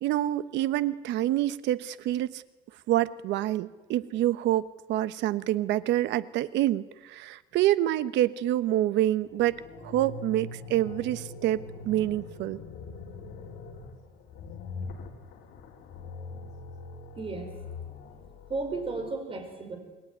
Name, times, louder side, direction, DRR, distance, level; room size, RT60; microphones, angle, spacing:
voice 1, 0.0-2.4 2.9-12.6, right 13 dB, 75° right, 15 dB, 1.1 m, -27 dB
sound 1, 9.2-19.1, left 3 dB, 70° left, 5.0 m, -43 dB
voice 2, 17.2-17.8 18.5-19.8, right 3 dB, 30° right, 6 dB, 5.4 m, -34 dB
27.5 x 21.5 x 9.7 m, 1.2 s
cardioid pair, 145°, 19 cm